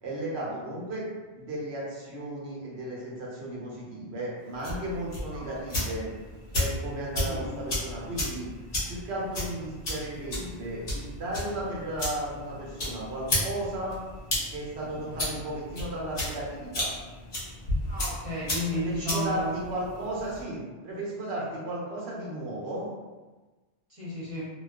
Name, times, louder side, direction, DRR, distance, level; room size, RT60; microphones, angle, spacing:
voice 1, 0.0-1.1 1.3-6.1 6.5-8.5 8.9-14.0 14.5-16.9 18.7-22.9, right 1 dB, 75° right, -5 dB, 1.0 m, -35 dB
sound 1, 4.5-20.4, left 1 dB, 45° left, 0.8 m, -34 dB
voice 2, 5.3-5.8 7.2-7.6 17.9-19.6 21.3-21.4 23.9-24.5, equal, 35° right, -11 dB, 0.9 m, -33 dB
2.3 x 2.2 x 2.3 m, 1.3 s
omnidirectional pair, 1.1 m